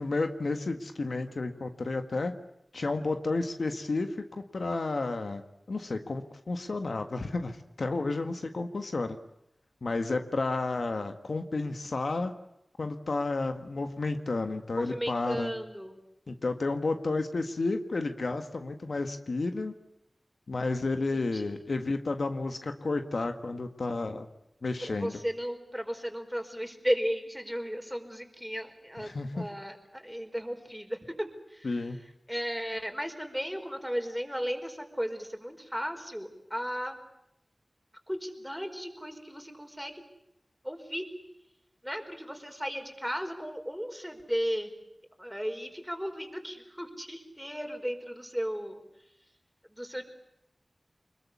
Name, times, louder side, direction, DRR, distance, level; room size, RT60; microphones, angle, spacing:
voice 1, 0.0-2.3 2.7-4.2 4.5-5.4 5.7-6.2 6.5-9.2 9.8-12.3 12.8-15.5 16.3-19.7 20.5-24.3 24.6-25.2 29.0-29.5 31.6-32.0, left 3 dB, 80° left, 7 dB, 1.7 m, -31 dB
voice 2, 14.8-15.9 21.3-21.6 24.9-30.9 31.2-31.3 32.3-37.0 38.1-39.9 40.6-41.0 41.8-44.7 45.2-48.8 49.8-50.0, equal, ahead, 4 dB, 4.9 m, -35 dB
25.0 x 21.5 x 8.4 m, 0.83 s
wide cardioid pair, 55°, 0 cm